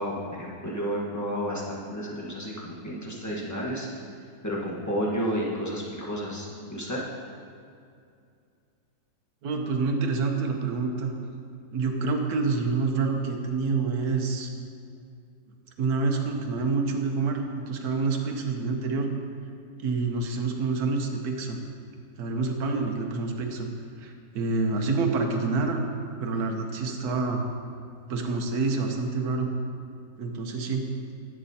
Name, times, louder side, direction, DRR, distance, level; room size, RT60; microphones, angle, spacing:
voice 1, 0.0-3.9 4.4-7.0, equal, 10° left, -5 dB, 1.1 m, -31 dB
voice 2, 9.4-11.1 11.7-14.5 15.8-19.1 19.8-21.6 22.2-23.7 24.0-25.8 26.2-27.5 28.1-29.5 30.2-30.9, right 4 dB, 65° right, 3 dB, 1.3 m, -27 dB
11.0 x 8.8 x 2.8 m, 2.4 s
omnidirectional pair, 1.8 m